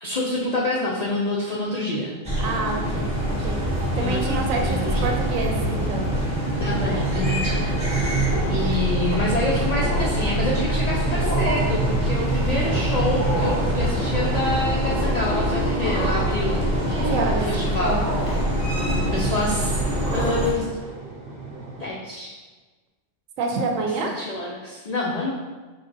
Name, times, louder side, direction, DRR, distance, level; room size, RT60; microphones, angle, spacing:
voice 1, 0.0-2.1 3.9-5.1 6.6-8.2 8.5-16.5 17.1-18.0 19.1-19.8 20.1-20.7 21.8-22.4 24.0-25.3, left 2 dB, 85° left, -4 dB, 0.3 m, -27 dB
sound 1, 2.2-20.5, equal, 15° right, 0.9 m, -25 dB
voice 2, 2.4-3.6 4.0-6.1 16.9-17.5 17.8-18.0 23.4-24.1, right 3 dB, 85° right, 2 dB, 1.0 m, -27 dB
sound 2, 4.5-21.9, right 3 dB, 50° right, 0.6 m, -31 dB
sound 3, 6.7-7.3 7.7-7.9 8.3-8.5 9.1-9.2 9.6-10.3 11.0-11.6 13.0-13.7 14.7-15.3 15.6-16.4 16.8-17.4 18.0-18.4 18.8-19.5 19.8-20.5, equal, 15° left, 0.6 m, -31 dB
4.6 x 2.8 x 2.5 m, 1.3 s
omnidirectional pair, 1.3 m